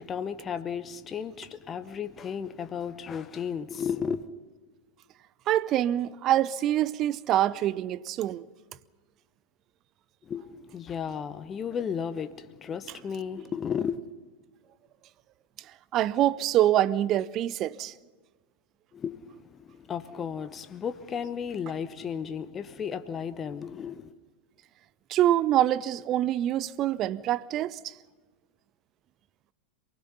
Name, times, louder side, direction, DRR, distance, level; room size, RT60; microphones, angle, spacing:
voice 1, 0.0-4.3 10.2-14.0 18.9-24.2, left 7 dB, 25° left, 0.9 m, -34 dB
voice 2, 5.5-8.4 15.9-17.9 25.1-27.9, right 12 dB, 35° right, 0.6 m, -25 dB
27.5 x 20.5 x 5.6 m
figure-of-eight pair, 90°, 0 cm